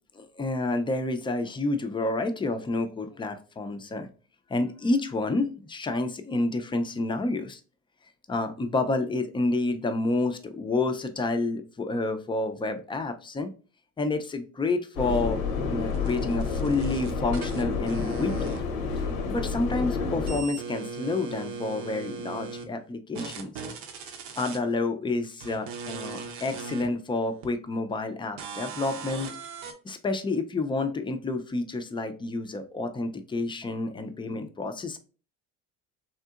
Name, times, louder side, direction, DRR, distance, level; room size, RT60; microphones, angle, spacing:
voice 1, 0.1-4.1 4.5-7.6 8.3-13.5 14.0-15.4 15.7-18.6 19.3-23.5 24.4-29.3 29.8-35.0, left 2 dB, 15° left, 8 dB, 0.4 m, -29 dB
Subway metro underground, 15.0-20.4, left 4 dB, 85° left, 0.7 m, -29 dB
sound 1, 15.9-19.0 19.3-22.7 23.1-24.6 25.4-26.9 27.4-27.5 28.4-29.7, right 5 dB, 80° right, 0.7 m, -39 dB
3.6 x 2.7 x 2.4 m, 0.37 s
supercardioid pair, 100°, 32 cm